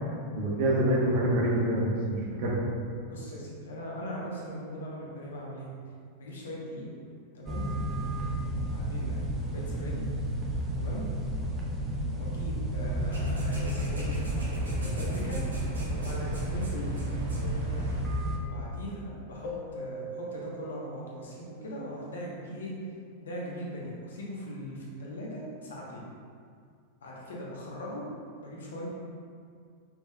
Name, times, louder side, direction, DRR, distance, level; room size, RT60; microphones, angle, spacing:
voice 1, 0.3-2.6, right 1 dB, 45° right, -4 dB, 1.1 m, -26 dB
voice 2, 3.1-5.7 6.2-6.9 7.3-7.6 8.6-10.0 10.8-11.0 12.1-14.2 14.8-15.4 15.9-16.9 18.4-22.7 23.2-26.0 27.0-28.0 28.4-28.9, equal, 65° left, -4 dB, 1.0 m, -40 dB
sound 1, 7.5-18.4, right 1 dB, 20° right, 0.7 m, -32 dB
sound 2, 13.0-18.0, equal, 70° right, 1.0 m, -40 dB
Keyboard (musical), 19.4-22.2, right 1 dB, 40° left, 0.9 m, -42 dB
5.4 x 4.4 x 2.3 m, 2.2 s
figure-of-eight pair, 90°, 0 cm